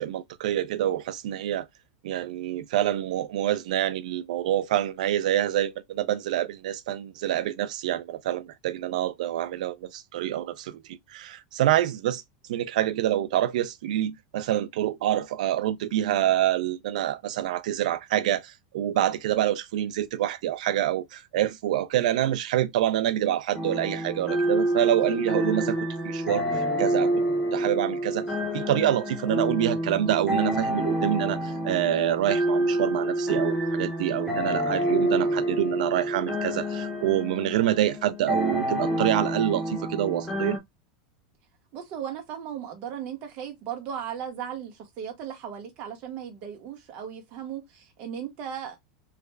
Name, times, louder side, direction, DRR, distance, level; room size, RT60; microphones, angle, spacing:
voice 1, 0.0-1.7 2.0-12.2 12.5-27.2 27.5-28.3 28.5-40.6, right 12 dB, 75° right, 0.4 m, -26 dB
sound 1, 23.5-40.6, right 1 dB, ahead, 0.7 m, -28 dB
voice 2, 41.7-48.8, right 9 dB, 35° right, 1.0 m, -36 dB
3.3 x 2.4 x 3.2 m
supercardioid pair, 175°, 4 cm